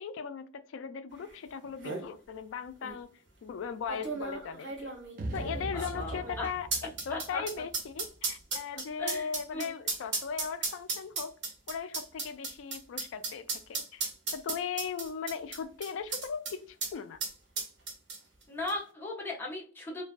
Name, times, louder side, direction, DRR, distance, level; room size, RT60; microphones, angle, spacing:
voice 1, 0.0-5.0 5.3-6.7 7.1-11.3 11.7-17.2, left 6 dB, 80° left, 0.3 m, -38 dB
sound 1, 1.3-1.4 1.6-2.0 2.8-2.9 3.9-16.5 16.8-16.9 17.2-18.4 18.7-18.8, right 3 dB, 70° right, 1.0 m, -35 dB
sound 2, 5.2-8.4, right 1 dB, 45° right, 0.4 m, -40 dB
voice 2, 5.7-6.5 7.1-7.4 9.0-9.7 18.5-20.0, left 2 dB, 10° left, 0.6 m, -37 dB
2.6 x 2.2 x 2.3 m
head